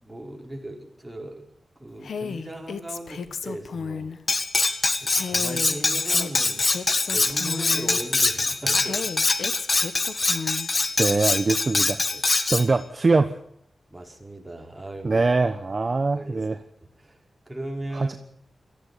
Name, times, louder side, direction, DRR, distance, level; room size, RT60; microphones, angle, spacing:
voice 1, 0.0-1.5 1.8-4.1 5.0-6.7 7.1-9.0 9.5-9.7 12.1-12.2 13.9-15.2 16.1-16.5 16.8-17.2 17.5-18.2, right 1 dB, 10° right, 1 dB, 5.1 m, -38 dB
Female speech woman speaking, 2.0-4.2 5.1-8.0 8.8-10.7, left 6 dB, 85° left, 1.4 m, -34 dB
Cutlery silverware, 4.3-12.7, left 3 dB, 40° left, 1.7 m, -24 dB
voice 2, 11.0-12.0 12.5-13.4 15.0-16.6 17.9-18.1, right 3 dB, 40° right, 8 dB, 1.1 m, -22 dB
18.5 x 15.0 x 9.8 m, 0.70 s
wide cardioid pair, 95°, 0 cm